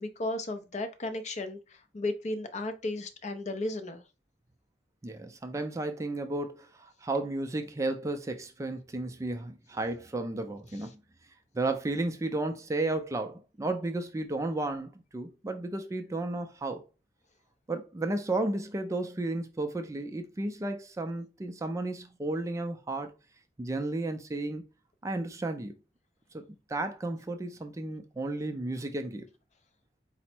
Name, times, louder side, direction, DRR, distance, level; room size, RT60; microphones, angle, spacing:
voice 1, 0.0-4.0, left 2 dB, 40° left, 0.5 m, -34 dB
voice 2, 5.0-10.9 11.5-16.8 17.7-23.1 23.6-24.6 25.0-25.7 26.3-26.4 26.7-29.3, right 2 dB, 15° right, 0.3 m, -33 dB
4.3 x 2.0 x 4.2 m
head